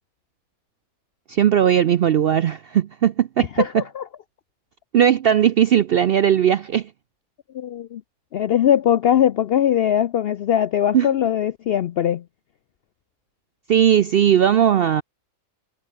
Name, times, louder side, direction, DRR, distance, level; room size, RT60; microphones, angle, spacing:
voice 1, 1.3-3.8 4.9-6.9 10.9-11.1 13.7-15.0, right 9 dB, 65° right, 0.5 m, -18 dB
voice 2, 3.4-4.0 7.5-8.0 8.3-12.2, left 10 dB, 70° left, 0.5 m, -20 dB
omnidirectional pair, 1.5 m